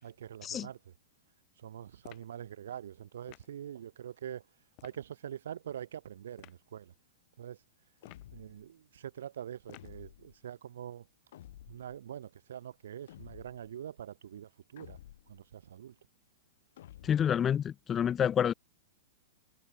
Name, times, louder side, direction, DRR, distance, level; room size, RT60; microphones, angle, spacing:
voice 1, 0.0-0.9 1.6-4.5 4.8-6.9 7.4-7.6 8.3-11.1 11.7-15.0 15.3-16.0, right 10 dB, 80° right, 2.1 m, -44 dB
sound 1, 2.0-2.4 3.3-3.6 4.8-5.0 6.4-6.6 8.0-8.4 9.7-10.0, left 22 dB, 35° left, 0.9 m, -54 dB
sound 2, 8.0-8.7 9.7-10.4 11.3-12.0 13.1-13.7 14.8-15.4 16.8-17.4, left 12 dB, 65° left, 6.9 m, -52 dB
voice 2, 17.0-18.5, left 9 dB, 20° left, 0.4 m, -28 dB
hypercardioid pair, 150°, 0 cm